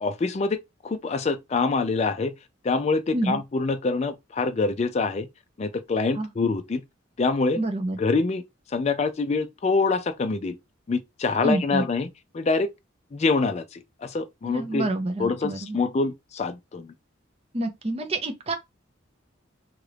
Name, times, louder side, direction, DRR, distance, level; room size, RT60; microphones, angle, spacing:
voice 1, 0.0-2.3 2.6-5.3 5.6-6.8 7.2-7.6 8.0-8.4 8.7-10.5 10.9-12.1 12.3-12.7 13.1-14.9 15.2-16.9, left 4 dB, 35° left, 0.3 m, -25 dB
voice 2, 7.6-8.0 11.4-11.8 14.4-15.8 17.5-18.6, right 2 dB, 30° right, 0.6 m, -27 dB
2.9 x 2.4 x 3.1 m
head